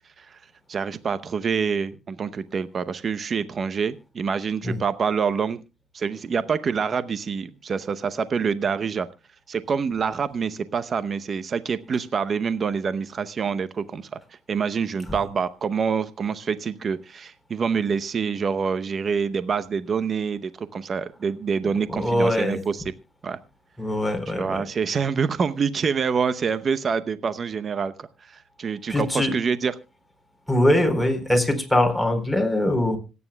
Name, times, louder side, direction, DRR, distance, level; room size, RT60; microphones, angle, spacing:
voice 1, 0.7-5.6 5.9-9.1 9.5-22.8 23.2-23.4 24.3-29.7, right 6 dB, 50° right, 14 dB, 0.8 m, -26 dB
voice 2, 21.9-22.6 23.8-24.7 28.9-29.3 30.5-33.0, left 1 dB, 5° left, 3 dB, 4.0 m, -22 dB
26.0 x 9.5 x 2.3 m, 0.28 s
supercardioid pair, 65°, 0 cm